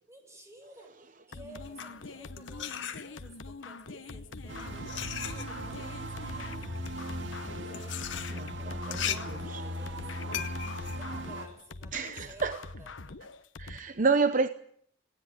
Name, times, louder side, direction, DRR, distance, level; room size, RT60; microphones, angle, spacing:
voice 1, 0.1-0.9 1.3-4.9 5.2-6.9 7.6-10.5 10.8-12.0 12.3-12.9, right 1 dB, 15° right, 6.7 m, -53 dB
sound 1, 1.3-13.8, left 3 dB, 85° left, 1.1 m, -44 dB
sound 2, 1.5-3.5 4.3-12.2, left 9 dB, 70° left, 1.7 m, -39 dB
sound 3, 4.5-11.5, equal, 70° right, 2.6 m, -38 dB
voice 2, 8.3-9.2 9.5-9.6 11.9-12.6 13.6-14.5, right 4 dB, 45° right, 0.8 m, -29 dB
19.0 x 18.5 x 9.7 m
head